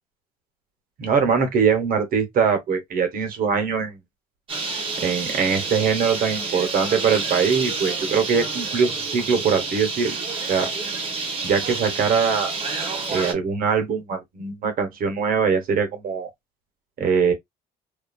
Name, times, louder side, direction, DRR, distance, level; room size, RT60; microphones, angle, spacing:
voice 1, 1.0-4.0 5.0-10.2 10.5-10.7 11.4-12.5 13.1-16.3 17.0-17.3, right 6 dB, 60° right, 1.0 m, -22 dB
Bird, 4.5-13.3, right 4 dB, 35° right, 1.1 m, -29 dB
2.7 x 2.6 x 2.3 m
cardioid pair, 110°, 17 cm